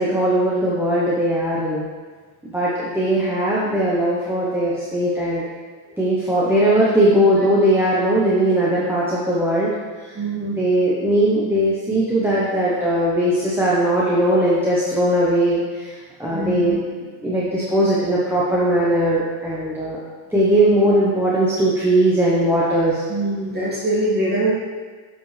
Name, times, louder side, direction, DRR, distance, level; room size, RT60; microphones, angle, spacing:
voice 1, 0.0-1.9 2.5-5.4 6.0-9.7 10.6-15.9 16.2-16.8 17.2-20.0 20.3-23.0, right 1 dB, 5° right, -8 dB, 1.0 m, -19 dB
voice 2, 10.1-10.6 16.3-16.7 23.1-24.5, right 1 dB, 20° right, -6 dB, 2.1 m, -23 dB
7.7 x 5.1 x 3.3 m, 1.5 s
cardioid pair, 125°, 47 cm